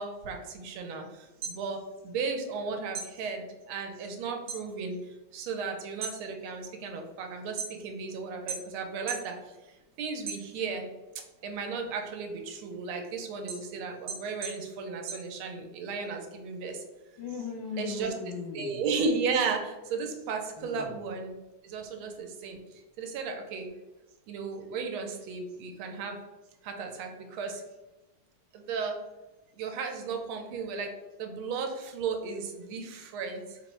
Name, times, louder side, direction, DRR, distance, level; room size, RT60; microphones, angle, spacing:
voice 1, 0.0-10.9 11.4-16.8 17.8-18.1 18.5-21.3 21.6-23.7 24.3-26.2 26.6-27.6 28.5-29.0 29.5-33.6, right 4 dB, 90° right, 3 dB, 1.5 m, -35 dB
sound 1, 1.2-2.6 2.9-4.7 5.0-5.5 5.9-8.1 8.5-9.3 9.7-10.9 11.3-15.9, right 5 dB, 60° right, 1.2 m, -40 dB
voice 2, 17.2-18.8 20.6-21.0, left 5 dB, 70° left, -3 dB, 1.2 m, -38 dB
4.1 x 2.0 x 4.4 m, 1.1 s
omnidirectional pair, 2.3 m